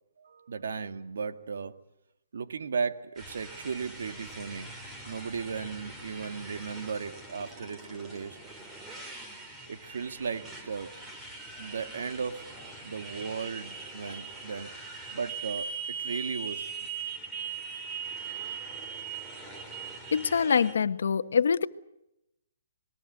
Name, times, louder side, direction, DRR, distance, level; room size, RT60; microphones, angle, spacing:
voice 1, 0.2-1.8 2.3-8.4 9.7-11.0 11.6-12.5 12.8-16.7, right 5 dB, 75° right, 1.9 m, -36 dB
Motorcycle, 3.2-20.7, right 5 dB, 10° right, 3.6 m, -41 dB
voice 2, 20.1-21.7, left 6 dB, 70° left, 1.2 m, -24 dB
27.0 x 21.5 x 8.1 m
hypercardioid pair, 160°, 0 cm